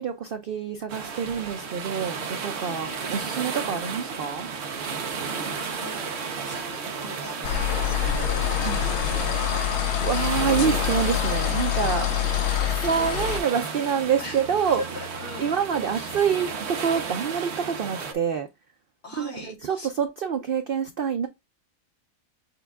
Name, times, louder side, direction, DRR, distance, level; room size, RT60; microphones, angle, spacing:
voice 1, 0.0-4.5 8.6-8.8 10.0-12.0 12.7-14.8 15.4-18.5 19.2-21.3, right 7 dB, 90° right, 0.4 m, -27 dB
sound 1, 0.9-18.1, right 5 dB, 55° right, 0.8 m, -33 dB
voice 2, 2.6-3.0 4.8-6.1 6.5-9.6 11.9-12.2 14.2-15.6 15.9-16.2 19.0-20.0, left 2 dB, 90° left, 3.5 m, -42 dB
sound 2, 7.4-13.4, left 11 dB, 60° left, 0.8 m, -26 dB
6.7 x 2.3 x 3.5 m
omnidirectional pair, 1.6 m